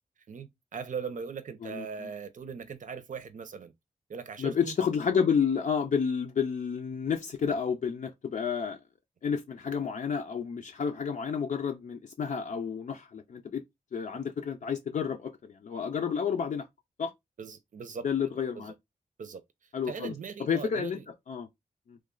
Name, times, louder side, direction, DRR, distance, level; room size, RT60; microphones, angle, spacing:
voice 1, 0.3-3.7 4.1-4.8 17.4-18.1 18.5-18.7 19.2-19.4 19.9-21.1, right 6 dB, 65° right, 0.6 m, -39 dB
voice 2, 4.4-8.8 9.2-13.6 13.9-16.6 17.0-17.1 18.0-18.7 19.7-20.1 20.5-21.0 21.3-21.5 21.9-22.0, left 6 dB, 65° left, 0.5 m, -30 dB
3.1 x 2.3 x 3.7 m
wide cardioid pair, 110°, 14 cm